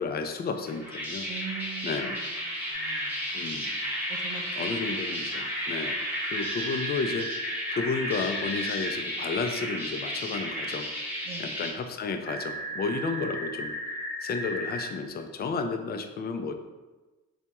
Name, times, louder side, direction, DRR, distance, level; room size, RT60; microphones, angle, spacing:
voice 1, 0.0-1.3 1.8-2.2 3.3-3.8 4.6-6.0 6.3-7.3 7.7-10.9 11.4-13.7 14.2-16.6, left 4 dB, 35° left, 6 dB, 0.4 m, -32 dB
sound 1, 0.6-11.7, equal, 5° right, 1.0 m, -33 dB
voice 2, 1.2-3.3 4.1-5.0 5.2-5.5 11.2-11.5, right 7 dB, 85° right, 5 dB, 0.5 m, -43 dB
sound 2, 2.7-3.0 6.3-9.0 12.3-14.9, equal, 55° left, 0.7 m, -35 dB
4.2 x 2.3 x 2.9 m, 1.2 s
cardioid pair, 90°, 30 cm